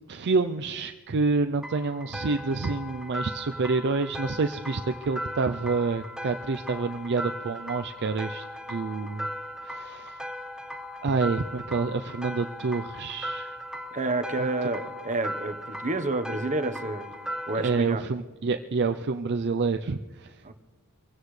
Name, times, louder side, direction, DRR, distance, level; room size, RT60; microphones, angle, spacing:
voice 1, 0.1-9.3 9.6-10.2 11.0-13.5 14.4-14.5 17.5-20.4, right 4 dB, 50° right, 7 dB, 0.5 m, -28 dB
sound 1, 1.6-17.8, equal, 5° right, 0.8 m, -38 dB
voice 2, 13.9-17.1 17.5-18.0 20.4-20.5, right 2 dB, 35° right, 9 dB, 1.1 m, -29 dB
25.5 x 16.0 x 3.3 m, 1.4 s
head